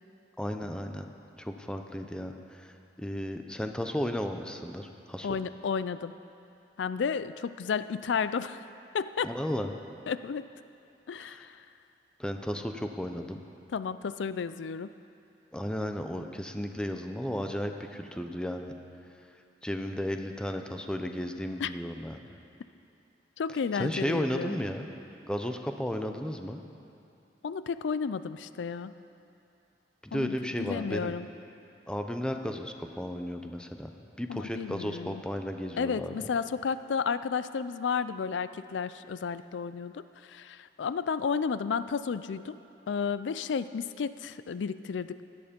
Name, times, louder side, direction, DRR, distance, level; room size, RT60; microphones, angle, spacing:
voice 1, 0.4-1.1 1.4-5.4 9.2-9.7 11.2-11.5 12.2-13.4 15.5-18.7 19.6-22.2 23.7-24.9 25.3-26.6 30.0-31.1 31.9-33.9 34.2-36.3, equal, 5° left, 5 dB, 0.7 m, -34 dB
voice 2, 5.2-6.1 6.8-8.6 8.9-9.3 10.1-10.4 11.1-11.6 13.7-14.9 21.6-21.7 23.4-24.6 27.4-28.9 30.1-31.3 34.3-35.2 35.8-42.6 42.9-45.2, left 6 dB, 85° left, 14 dB, 0.4 m, -32 dB
17.0 x 11.5 x 5.2 m, 2.7 s
head